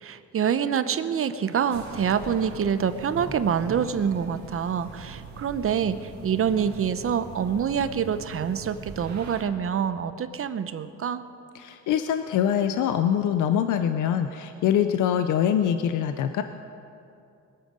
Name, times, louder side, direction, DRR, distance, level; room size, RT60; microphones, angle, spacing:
voice 1, 0.0-11.2, right 7 dB, 45° right, 11 dB, 0.8 m, -26 dB
sound 1, 1.7-9.4, right 3 dB, 65° right, 2.2 m, -41 dB
voice 2, 11.5-16.4, left 9 dB, 80° left, 8 dB, 0.7 m, -24 dB
22.0 x 9.1 x 5.2 m, 2.7 s
cardioid pair, 90°, 30 cm